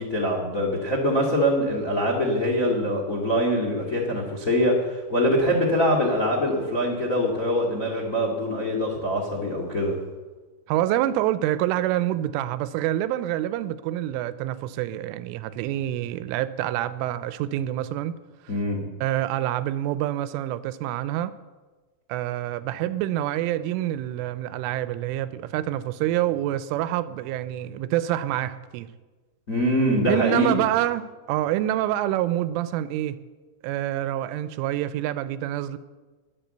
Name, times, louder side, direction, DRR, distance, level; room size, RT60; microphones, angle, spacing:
voice 1, 0.0-9.9 18.5-18.8 29.5-30.6, equal, 50° left, 0 dB, 0.9 m, -24 dB
voice 2, 10.7-18.2 19.0-21.3 22.1-28.9 30.1-33.2 33.6-35.8, right 13 dB, 85° right, 14 dB, 3.1 m, -27 dB
21.0 x 7.9 x 7.9 m, 1.3 s
omnidirectional pair, 5.7 m